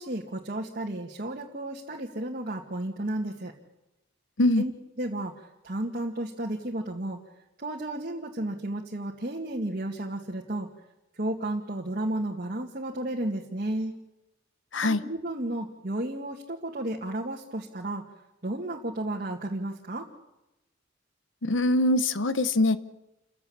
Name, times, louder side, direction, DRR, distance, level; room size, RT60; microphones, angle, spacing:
voice 1, 0.0-3.5 4.6-4.7 5.0-7.2 7.6-10.7 11.2-13.9 14.8-18.0 18.4-20.1, right 1 dB, 45° right, -1 dB, 2.2 m, -33 dB
voice 2, 21.4-22.8, left 1 dB, 75° left, 13 dB, 1.0 m, -23 dB
29.5 x 15.5 x 8.8 m, 0.93 s
head